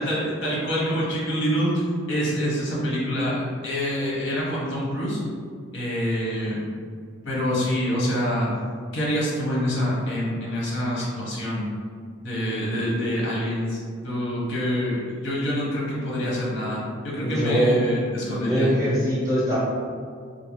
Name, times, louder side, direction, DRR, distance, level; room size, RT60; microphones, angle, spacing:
voice 1, 0.0-5.2 5.7-6.6 7.2-8.5 8.9-11.7 12.2-18.7, equal, 60° left, -5 dB, 0.8 m, -26 dB
voice 2, 17.2-17.8 18.2-19.6, equal, 15° right, -11 dB, 1.0 m, -22 dB
2.6 x 2.2 x 2.9 m, 2.1 s
head